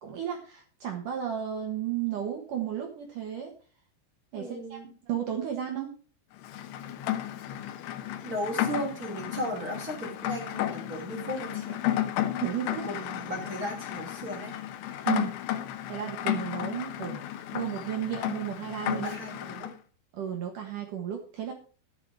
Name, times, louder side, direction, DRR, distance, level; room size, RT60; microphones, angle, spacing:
voice 1, 0.0-3.5 4.3-4.8 5.1-5.9 12.4-12.9 15.1-15.3 15.9-17.2 17.5-19.1 20.1-21.5, right 10 dB, 65° right, 3 dB, 2.0 m, -33 dB
voice 2, 4.3-4.9 8.2-11.8 12.9-14.5 15.0-15.3 18.9-19.7, equal, 25° right, -1 dB, 2.6 m, -36 dB
Rain, 6.4-19.7, left 12 dB, 75° left, 3.1 m, -33 dB
13.0 x 7.9 x 4.8 m, 0.39 s
omnidirectional pair, 5.8 m